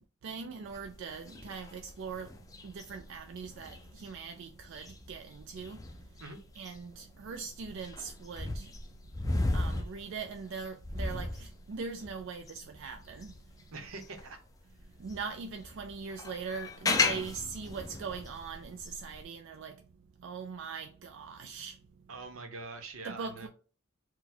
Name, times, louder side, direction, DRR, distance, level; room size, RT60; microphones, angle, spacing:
voice 1, 0.2-2.3 2.6-5.8 6.6-8.7 9.5-13.4 15.0-19.8 20.2-21.8 23.0-23.5, right 5 dB, 60° right, 0.3 m, -41 dB
sound 1, 0.7-14.3 14.8-19.2, left 2 dB, 15° left, 0.4 m, -36 dB
voice 2, 13.7-14.4 22.1-23.5, right 3 dB, 80° right, 0.9 m, -44 dB
4.3 x 2.2 x 4.2 m
head